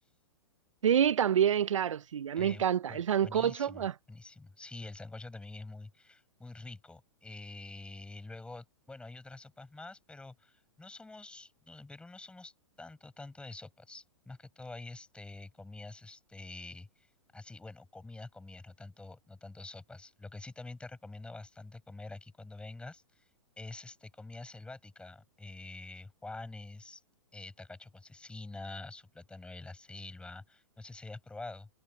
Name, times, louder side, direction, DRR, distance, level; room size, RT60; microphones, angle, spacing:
voice 1, 0.8-3.9, right 9 dB, 90° right, 0.6 m, -27 dB
voice 2, 2.4-23.3 23.6-27.0 27.3-31.7, left 2 dB, 5° left, 6.0 m, -47 dB
hypercardioid pair, 130°, 16 cm